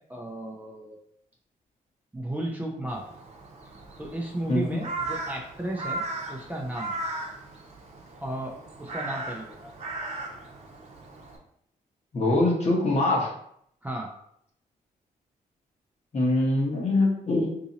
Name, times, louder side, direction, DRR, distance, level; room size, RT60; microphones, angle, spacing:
voice 1, 0.1-0.9 2.1-3.1 4.0-6.0 6.3-6.9 8.2-9.7 13.8-14.1, right 1 dB, 10° right, -1 dB, 0.6 m, -34 dB
Crow, 2.9-11.4, right 2 dB, 45° right, 0.8 m, -37 dB
voice 2, 12.1-13.3 16.1-17.5, left 2 dB, 45° left, -2 dB, 1.2 m, -23 dB
2.9 x 2.7 x 3.9 m, 0.70 s
cardioid pair, 85°, 15 cm